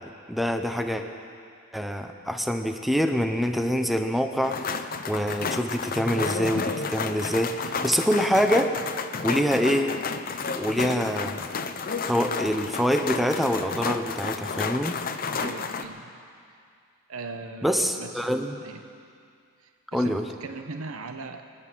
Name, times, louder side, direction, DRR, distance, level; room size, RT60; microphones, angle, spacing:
voice 1, 0.3-1.0 1.7-8.8 9.2-9.9 10.5-11.5 12.1-15.0 17.6-18.6 19.9-20.3, equal, ahead, 5 dB, 0.8 m, -25 dB
sound 1, 4.4-15.8, left 5 dB, 40° left, 0.7 m, -31 dB
voice 2, 15.4-16.1 17.1-18.3 18.6-18.8 19.6-21.4, right 3 dB, 65° right, 6 dB, 0.9 m, -39 dB
23.5 x 9.6 x 6.1 m, 2.3 s
head